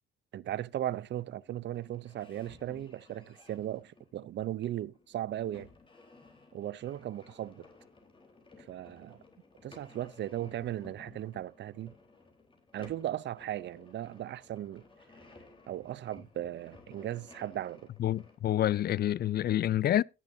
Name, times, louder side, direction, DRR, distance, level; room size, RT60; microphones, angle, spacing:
voice 1, 0.3-5.7 6.5-7.7 8.6-9.2 9.6-11.9 12.7-14.8 15.7-17.9, right 12 dB, 65° right, 0.6 m, -37 dB
sound 1, 0.8-18.4, left 3 dB, 25° left, 4.0 m, -57 dB
voice 2, 18.0-20.0, left 12 dB, 50° left, 0.4 m, -28 dB
17.5 x 7.3 x 2.7 m
cardioid pair, 90°, 20 cm